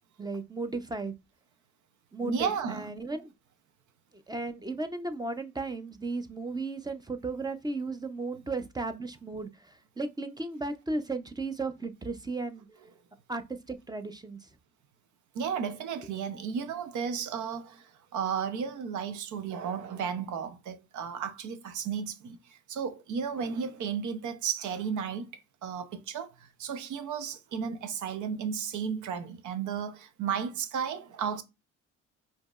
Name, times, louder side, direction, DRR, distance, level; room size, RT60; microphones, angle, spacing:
voice 1, 0.2-1.1 2.1-3.3 4.3-12.7 13.3-14.5, right 3 dB, 15° right, 0.6 m, -35 dB
voice 2, 2.2-2.9 15.3-25.3 25.6-31.4, right 7 dB, 80° right, 0.8 m, -34 dB
5.0 x 2.9 x 2.4 m
cardioid pair, 90°, 30 cm